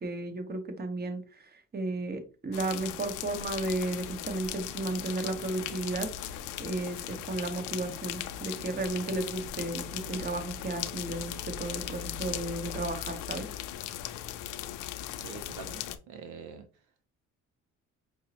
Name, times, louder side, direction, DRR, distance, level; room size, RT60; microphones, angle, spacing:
voice 1, 0.0-6.1 6.6-13.5, right 2 dB, 30° right, 1.0 m, -34 dB
sound 1, 2.5-16.0, left 11 dB, 90° left, 0.5 m, -38 dB
voice 2, 15.2-16.7, right 6 dB, 75° right, 0.6 m, -45 dB
5.2 x 2.0 x 2.8 m
cardioid pair, 90°, 30 cm